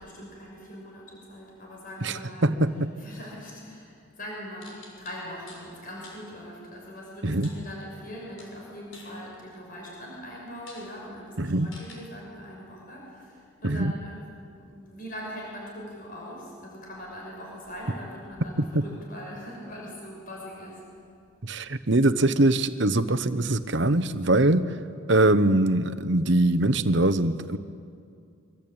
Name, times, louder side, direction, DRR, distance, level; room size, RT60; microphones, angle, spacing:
voice 1, 0.0-2.5 3.0-14.2 14.6-20.8, equal, 40° left, -2 dB, 6.6 m, -41 dB
voice 2, 2.0-2.9 7.2-7.5 11.4-11.7 13.6-13.9 21.4-24.7 25.1-27.6, right 2 dB, 55° right, 11 dB, 1.1 m, -22 dB
sound 1, 4.6-5.7 6.0-6.3 7.4-8.1 8.4-9.7 10.2-10.3 10.7-10.9 11.7-12.0, left 3 dB, 70° left, 6.9 m, -49 dB
25.0 x 25.0 x 8.8 m, 2.3 s
head